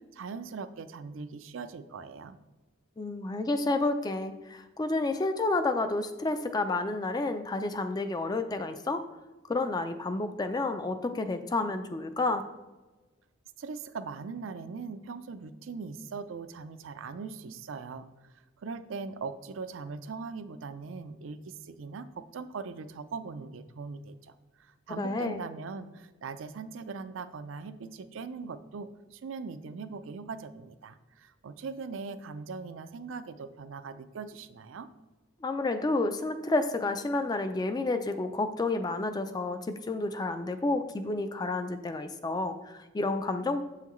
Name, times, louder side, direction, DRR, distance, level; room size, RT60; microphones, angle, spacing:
voice 1, 0.1-2.4 13.6-18.1 18.6-24.3 24.6-34.9, right 4 dB, 75° right, 11 dB, 0.4 m, -40 dB
voice 2, 3.0-9.0 9.5-12.4 25.0-25.4 35.4-43.6, left 2 dB, 20° left, 9 dB, 0.3 m, -30 dB
7.5 x 5.7 x 3.1 m, 1.2 s
head